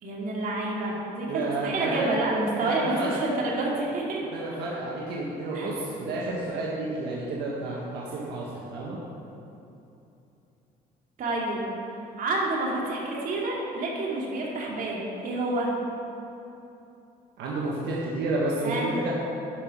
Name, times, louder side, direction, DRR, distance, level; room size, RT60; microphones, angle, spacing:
voice 1, 0.0-4.2 5.5-5.7 11.2-11.7 12.2-15.7 18.6-18.9, right 2 dB, 55° right, -3 dB, 2.3 m, -28 dB
voice 2, 1.3-2.1 2.5-3.2 4.2-9.0 17.4-19.1, right 2 dB, 80° right, -4 dB, 1.4 m, -31 dB
11.0 x 5.9 x 5.3 m, 2.9 s
cardioid pair, 110°, 17 cm